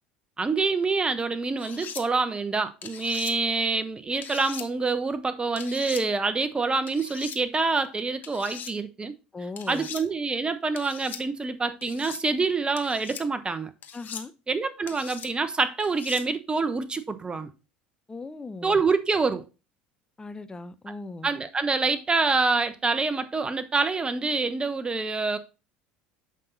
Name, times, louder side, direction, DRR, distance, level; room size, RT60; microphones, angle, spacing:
voice 1, 0.4-9.1 9.7-13.7 14.5-17.5 18.6-19.4 21.2-25.4, right 4 dB, 20° right, 1.0 m, -26 dB
sound 1, 1.6-2.0 2.8-3.3 4.2-4.7 5.6-6.0 6.9-7.4 8.2-8.7 9.6-10.0 10.8-11.2 11.8-12.2 12.8-13.2 13.8-14.3 14.9-15.3 15.8-16.2, left 8 dB, 45° left, 1.1 m, -40 dB
voice 2, 9.3-9.9 13.9-14.3 18.1-18.8 20.2-21.3, left 3 dB, 20° left, 0.7 m, -38 dB
7.7 x 5.4 x 4.0 m
hypercardioid pair, 70°, 4 cm